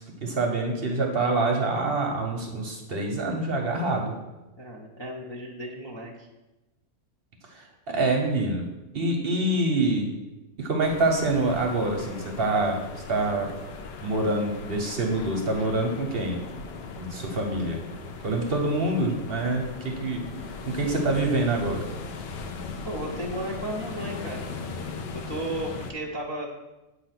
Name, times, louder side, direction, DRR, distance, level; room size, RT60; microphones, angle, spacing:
voice 1, 0.0-4.1 7.5-8.7 8.9-10.1 10.6-12.8 13.1-13.5 14.0-16.4 17.0-17.8 18.2-21.9, right 2 dB, 50° right, 1 dB, 0.9 m, -26 dB
voice 2, 4.6-6.3 22.8-24.5 25.1-26.5, right 1 dB, 25° left, -4 dB, 0.6 m, -34 dB
sound 1, 10.8-25.9, left 4 dB, 60° left, 0.8 m, -38 dB
7.9 x 2.8 x 5.8 m, 1.0 s
omnidirectional pair, 1.4 m